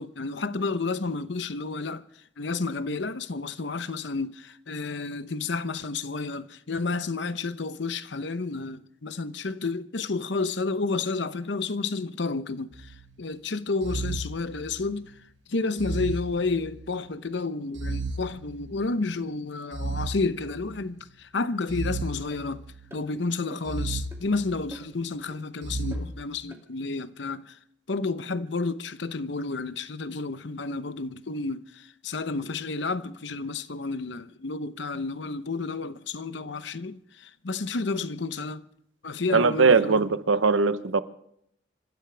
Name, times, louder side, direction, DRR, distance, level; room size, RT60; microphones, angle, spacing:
voice 1, 0.0-2.0 2.4-15.1 15.5-22.6 22.9-27.6 27.9-38.6 39.0-40.0, left 3 dB, 65° left, 0.8 m, -31 dB
sound 1, 12.7-13.1 13.8-15.1 15.8-17.1 17.7-19.0 19.7-21.0 21.7-23.0 23.7-24.9 25.6-25.9, right 2 dB, 70° right, 1.5 m, -34 dB
sound 2, 22.3-22.4 22.9-23.1 23.5-23.8 24.1-24.2 24.7-25.0 25.3-25.4 25.9-26.1 26.5-26.6, right 1 dB, 15° right, 2.5 m, -44 dB
voice 2, 39.3-41.0, right 4 dB, 85° right, 0.9 m, -20 dB
27.0 x 15.5 x 3.4 m
head